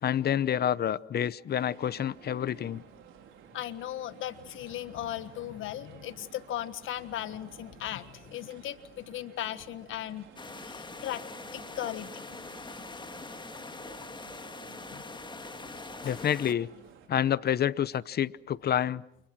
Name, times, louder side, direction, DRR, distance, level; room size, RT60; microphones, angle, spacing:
voice 1, 0.0-2.8 16.0-16.7 17.1-19.0, left 10 dB, 55° left, 18 dB, 0.9 m, -28 dB
sound 1, 1.6-17.1, right 8 dB, 90° right, 4.4 m, -54 dB
voice 2, 3.5-10.3 10.6-11.2 11.5-12.4 16.0-16.2, left 12 dB, 80° left, 12 dB, 1.5 m, -37 dB
sound 2, 10.4-16.5, left 3 dB, 25° left, 1.9 m, -43 dB
29.5 x 27.0 x 6.2 m, 0.81 s
cardioid pair, 90°, 20 cm